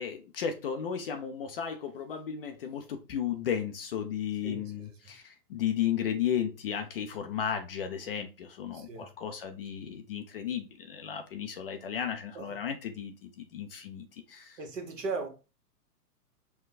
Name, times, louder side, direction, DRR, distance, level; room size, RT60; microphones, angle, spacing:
voice 1, 0.0-14.6, left 8 dB, 40° left, 0.5 m, -34 dB
voice 2, 4.4-4.9 8.7-9.1 12.3-12.6 14.6-15.3, right 4 dB, 50° right, 1.5 m, -37 dB
5.5 x 2.3 x 4.0 m
figure-of-eight pair, 120°, 48 cm